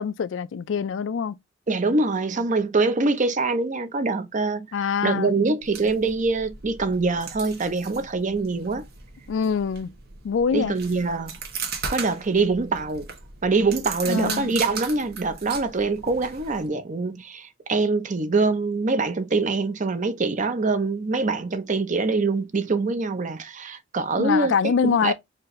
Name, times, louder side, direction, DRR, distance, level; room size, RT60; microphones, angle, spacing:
voice 1, 0.0-1.4 4.7-5.3 9.3-9.9 10.2-10.7 14.1-14.5 24.2-25.1, left 6 dB, 75° left, 0.4 m, -24 dB
voice 2, 1.7-4.7 5.0-8.8 10.5-11.4 11.9-13.1 13.4-24.5 24.8-25.1, right 3 dB, 40° right, 0.6 m, -24 dB
sound 1, 5.6-16.7, right 5 dB, 55° right, 1.1 m, -38 dB
4.4 x 2.6 x 3.0 m
head